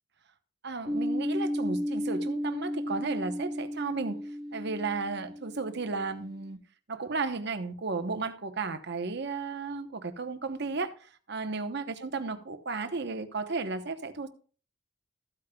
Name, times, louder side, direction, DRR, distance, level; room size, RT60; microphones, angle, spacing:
voice 1, 0.6-4.2 4.5-6.6 6.9-14.3, right 4 dB, 60° right, 1.0 m, -34 dB
sound 1, 0.9-6.4, equal, 5° left, 3.7 m, -34 dB
14.5 x 8.7 x 2.3 m
head